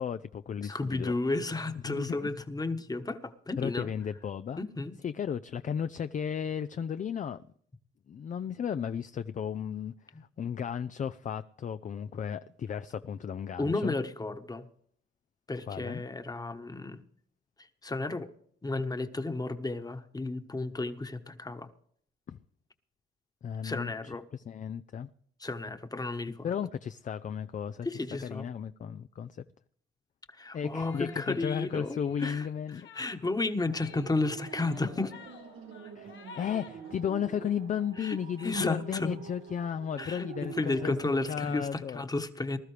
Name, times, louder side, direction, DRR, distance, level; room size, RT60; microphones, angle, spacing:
voice 1, 0.0-1.1 1.8-2.3 3.6-4.6 5.0-7.4 8.1-14.0 15.7-16.0 22.3-22.4 23.4-25.1 26.4-27.9 28.2-29.4 30.5-32.9 36.0-40.9 41.3-42.0, left 8 dB, 40° left, 0.5 m, -34 dB
voice 2, 0.6-3.9 4.6-5.0 10.1-10.2 13.6-14.7 15.5-17.0 17.8-18.3 18.6-21.7 23.6-24.2 25.4-26.5 27.8-28.5 30.4-32.5 32.7-35.1 38.0-38.2 38.4-39.2 40.0-40.3 40.6-42.6, left 2 dB, 20° left, 1.3 m, -33 dB
sound 1, 30.8-37.6 38.0-38.3 38.6-38.7 38.9-40.3, left 6 dB, 70° left, 1.4 m, -54 dB
sound 2, 33.6-41.6, right 6 dB, 85° right, 1.6 m, -47 dB
20.0 x 12.5 x 3.3 m
cardioid pair, 80°, 21 cm